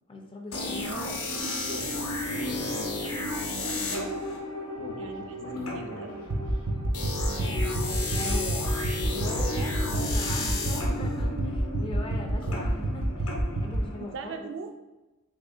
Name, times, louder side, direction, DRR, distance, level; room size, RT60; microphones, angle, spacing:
voice 1, 0.1-1.2 7.3-14.5, left 2 dB, 25° left, 1 dB, 0.4 m, -40 dB
sound 1, 0.5-14.2, left 2 dB, 90° left, 0.8 m, -33 dB
voice 2, 0.8-1.2 2.1-4.1 5.0-6.3 9.6-9.7 14.0-14.7, right 4 dB, 55° right, 5 dB, 0.3 m, -41 dB
Speech, 1.6-3.5 4.7-6.5, left 3 dB, 55° left, 0.9 m, -40 dB
sound 2, 6.3-13.8, right 1 dB, 75° right, 0.9 m, -29 dB
3.5 x 3.5 x 2.4 m, 1.1 s
head